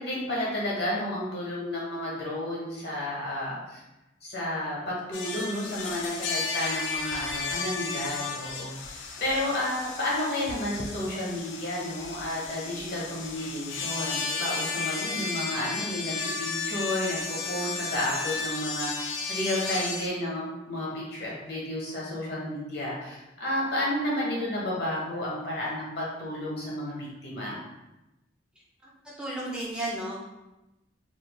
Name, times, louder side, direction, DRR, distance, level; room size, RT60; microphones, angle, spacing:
voice 1, 0.0-3.8 4.2-27.6, left 1 dB, 60° left, -5 dB, 1.0 m, -32 dB
sound 1, 5.1-20.1, left 4 dB, 85° left, 0.4 m, -34 dB
voice 2, 29.0-30.2, right 1 dB, 5° right, -6 dB, 0.5 m, -33 dB
3.1 x 2.7 x 2.3 m, 0.98 s
head